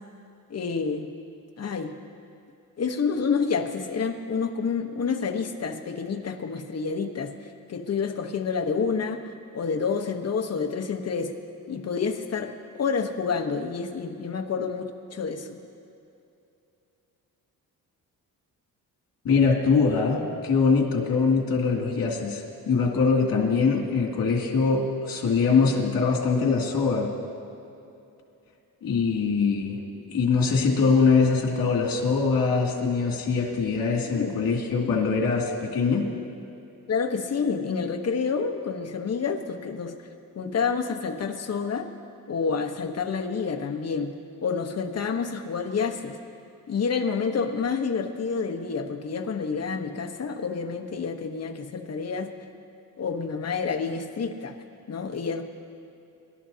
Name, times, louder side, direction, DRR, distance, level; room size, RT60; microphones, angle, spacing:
voice 1, 0.5-1.1 1.6-1.9 2.8-11.3 11.7-15.6 33.9-35.0 36.9-40.0 40.3-41.9 42.3-44.1 44.4-46.2 46.7-52.3 53.0-54.6 54.9-55.4, left 5 dB, 45° left, 4 dB, 1.1 m, -29 dB
voice 2, 19.2-27.1 28.8-29.8 30.1-36.1, left 4 dB, 75° left, -1 dB, 2.6 m, -23 dB
24.5 x 12.5 x 2.8 m, 2.7 s
cardioid pair, 120°, 35 cm